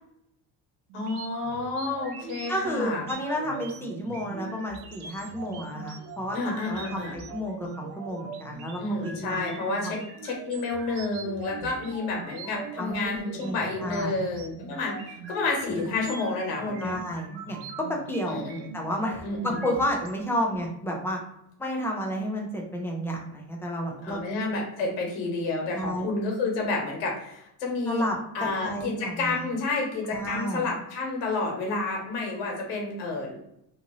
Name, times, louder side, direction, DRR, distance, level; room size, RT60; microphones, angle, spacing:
voice 1, 0.9-3.0 6.3-7.2 8.8-16.9 18.3-18.6 19.2-19.7 24.0-28.0 28.3-33.4, left 3 dB, 85° left, -1 dB, 1.2 m, -30 dB
sound 1, 0.9-20.1, right 5 dB, 65° right, 0.7 m, -42 dB
voice 2, 2.5-9.4 9.8-9.9 12.8-14.1 16.8-18.4 18.7-21.2 21.6-24.2 25.7-26.1 27.9-28.2 28.4-29.3 30.1-30.6, equal, 5° left, -1 dB, 0.6 m, -31 dB
2.8 x 2.5 x 2.9 m, 0.80 s
cardioid pair, 125°, 43 cm